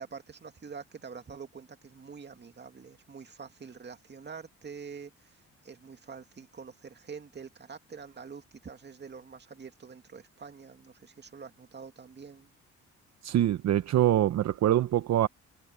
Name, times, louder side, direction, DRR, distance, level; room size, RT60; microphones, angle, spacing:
voice 1, 0.0-12.5, right 5 dB, 35° right, 2.5 m, -46 dB
voice 2, 13.2-15.3, right 12 dB, 60° right, 0.8 m, -24 dB
cardioid pair, 90°, 30 cm